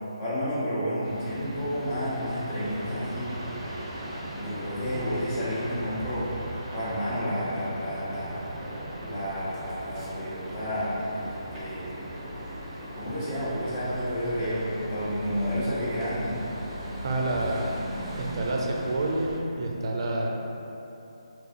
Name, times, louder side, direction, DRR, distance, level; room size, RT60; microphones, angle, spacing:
voice 1, 0.2-3.3 4.3-6.3 6.7-8.4 9.0-12.0 12.8-16.3, equal, 25° left, -9 dB, 1.2 m, -31 dB
sound 1, 1.0-19.4, right 1 dB, 15° right, 0.8 m, -38 dB
voice 2, 17.0-17.7 18.1-20.5, right 2 dB, 50° right, 0 dB, 0.6 m, -28 dB
3.9 x 2.6 x 3.8 m, 2.9 s
figure-of-eight pair, 150°, 3 cm